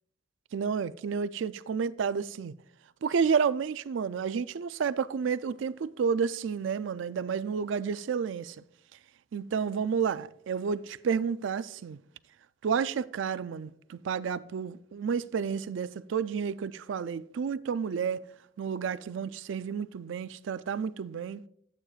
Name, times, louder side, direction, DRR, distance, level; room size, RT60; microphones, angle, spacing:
voice 1, 0.5-2.5 3.0-8.6 9.3-12.0 12.6-18.2 18.6-21.4, right 6 dB, 75° right, 0.4 m, -30 dB
11.5 x 8.3 x 2.4 m
head